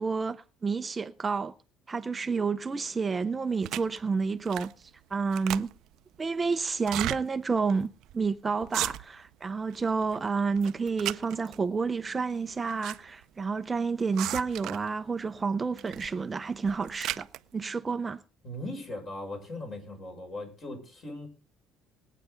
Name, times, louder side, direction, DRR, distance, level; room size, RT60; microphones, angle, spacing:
voice 1, 0.0-1.5 1.9-5.7 6.2-17.3 17.5-18.2, right 4 dB, 20° right, 0.6 m, -30 dB
sound 1, 3.6-4.0 4.5-4.8 5.1-6.0 6.8-7.2 7.7-7.8 8.0-8.3 8.6-9.3 9.7-10.2 10.6-11.6 12.4-13.0 13.2-13.3 14.2-14.9 15.8-16.1 16.5-17.4, right 14 dB, 70° right, 0.5 m, -35 dB
voice 2, 18.4-21.3, left 1 dB, 40° left, 6.5 m, -39 dB
20.5 x 9.1 x 3.9 m
cardioid pair, 135°, 0 cm